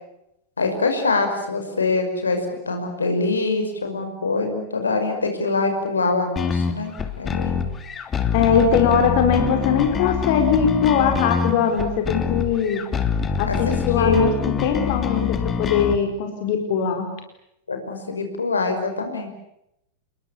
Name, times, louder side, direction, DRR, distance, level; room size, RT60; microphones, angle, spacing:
voice 1, 0.6-2.4 2.7-7.7 13.5-13.6 14.0-14.3 14.8-15.3 17.7-19.3, left 3 dB, 75° left, 5 dB, 5.6 m, -24 dB
sound 1, 6.4-16.0, left 6 dB, 25° left, 2.7 m, -25 dB
voice 2, 8.3-12.8 13.4-17.1, left 7 dB, 50° left, 4 dB, 4.3 m, -21 dB
29.5 x 21.5 x 8.6 m, 0.82 s
figure-of-eight pair, 90°, 0 cm